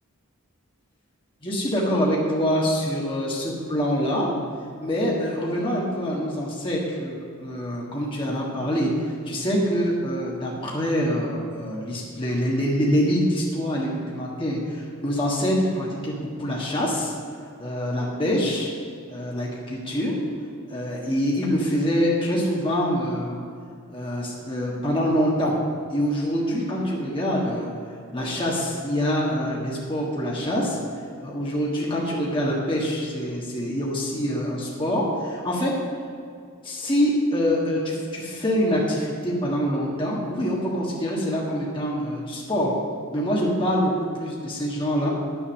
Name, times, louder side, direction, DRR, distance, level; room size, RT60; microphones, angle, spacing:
voice 1, 1.4-4.3 4.8-17.1 17.6-18.7 19.1-20.1 20.7-23.4 23.9-25.6 25.9-27.7 28.1-30.8 31.2-35.7 36.6-42.7 43.1-45.1, equal, 25° left, -4 dB, 1.5 m, -25 dB
9.8 x 7.3 x 6.4 m, 2.3 s
head